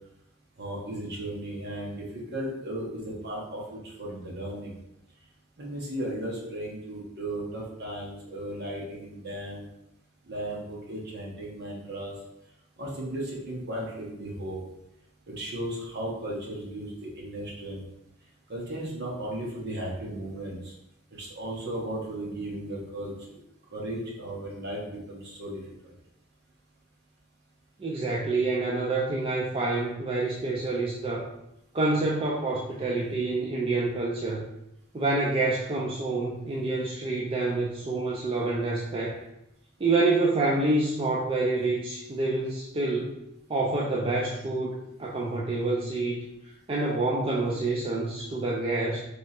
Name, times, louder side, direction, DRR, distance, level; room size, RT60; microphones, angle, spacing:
voice 1, 0.6-4.7 5.6-9.7 10.2-12.1 12.8-14.6 15.3-17.8 18.5-20.7 21.2-23.1 23.7-25.6, right 1 dB, 50° right, -3 dB, 1.2 m, -35 dB
voice 2, 27.8-31.3 31.7-34.4 34.9-39.2 39.8-43.2 43.5-46.2 46.7-49.0, right 2 dB, 25° right, -3 dB, 0.4 m, -27 dB
3.3 x 3.1 x 4.2 m, 0.85 s
head